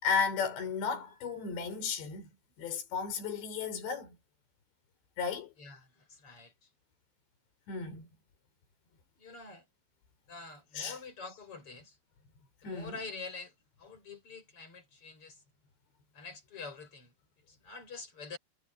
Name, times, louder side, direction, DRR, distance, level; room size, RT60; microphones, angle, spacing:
voice 1, 0.0-2.3 2.6-4.2 5.2-5.5 7.7-8.1 10.7-11.0 12.6-13.0, left 6 dB, 60° left, 7.6 m, -34 dB
voice 2, 5.6-6.7 9.2-9.7 10.3-12.0 12.6-15.4 16.1-17.1 17.5-18.4, left 4 dB, 25° left, 8.2 m, -46 dB
omnidirectional pair, 5.7 m